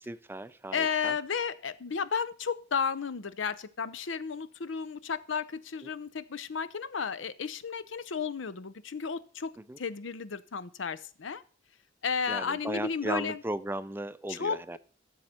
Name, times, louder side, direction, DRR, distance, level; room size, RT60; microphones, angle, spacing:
voice 1, 0.0-1.2 5.8-5.9 9.6-9.8 12.3-14.8, right 1 dB, 10° right, 13 dB, 0.4 m, -36 dB
voice 2, 0.7-9.5 9.8-11.4 12.0-13.4 14.3-14.8, left 6 dB, 90° left, 15 dB, 0.7 m, -33 dB
14.5 x 6.5 x 4.3 m, 0.42 s
head